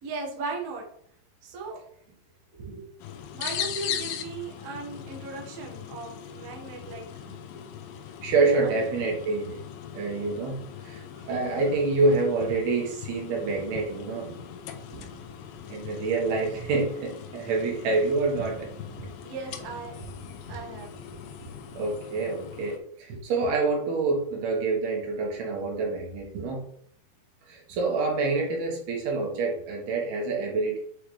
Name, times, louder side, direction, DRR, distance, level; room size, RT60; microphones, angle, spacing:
voice 1, 0.0-0.8 1.4-1.8 3.3-7.1 8.6-8.7 10.1-10.3 19.2-20.0 20.5-20.9, right 4 dB, 55° right, -2 dB, 1.8 m, -37 dB
voice 2, 2.5-2.9 6.9-7.0 7.3-7.4 8.2-9.6 9.9-14.6 15.7-18.7 20.5-20.6 21.7-26.6 27.5-30.8, right 3 dB, 70° right, -1 dB, 3.3 m, -27 dB
sound 1, 3.0-22.8, left 9 dB, 90° left, 2.1 m, -40 dB
sound 2, 12.8-22.1, right 4 dB, 5° left, 2.1 m, -49 dB
8.3 x 4.9 x 3.3 m, 0.63 s
omnidirectional pair, 4.9 m